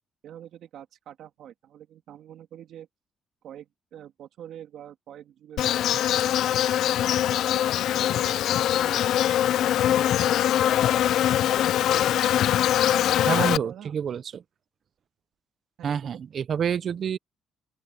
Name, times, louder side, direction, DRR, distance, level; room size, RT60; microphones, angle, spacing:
voice 1, 0.2-2.9 3.4-7.7 8.1-8.4 8.8-9.1 12.9-14.0 15.8-16.2, right 10 dB, 75° right, 2.2 m, -45 dB
Insect, 5.6-13.6, left 11 dB, 80° left, 0.5 m, -22 dB
voice 2, 13.3-14.4 15.8-17.2, right 8 dB, 55° right, 0.7 m, -28 dB
open air
cardioid pair, 90°, 0 cm